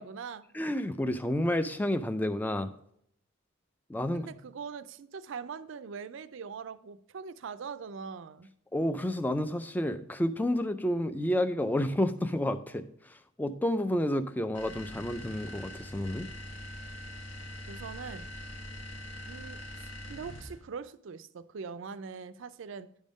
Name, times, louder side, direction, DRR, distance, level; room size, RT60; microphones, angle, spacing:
voice 1, 0.0-0.5 4.1-8.5 17.7-18.3 19.3-22.9, right 5 dB, 65° right, 13 dB, 0.4 m, -42 dB
voice 2, 0.5-2.7 3.9-4.3 8.7-16.3, left 1 dB, 10° left, 12 dB, 0.3 m, -30 dB
sound 1, 14.5-20.7, left 1 dB, 65° left, 1.0 m, -43 dB
9.8 x 3.6 x 5.1 m, 0.71 s
head